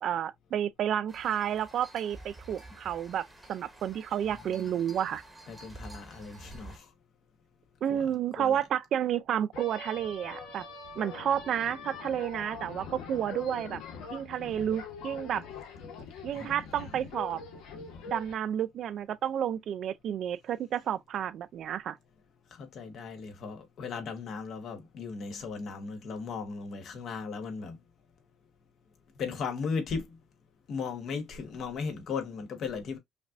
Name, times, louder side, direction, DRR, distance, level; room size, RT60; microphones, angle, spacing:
voice 1, 0.0-5.2 7.8-10.6 11.0-13.8 14.1-15.4 16.2-17.4 18.1-22.0, right 9 dB, 50° right, 0.4 m, -31 dB
sound 1, 1.1-6.8, right 1 dB, 5° right, 1.0 m, -50 dB
voice 2, 5.5-6.9 7.9-8.1 8.4-8.6 16.3-16.6 22.5-27.8 29.2-30.2 30.7-33.0, left 5 dB, 50° left, 1.0 m, -37 dB
sound 2, 9.5-18.3, left 4 dB, 80° left, 1.4 m, -43 dB
5.2 x 2.5 x 2.4 m
cardioid pair, 145°, 0 cm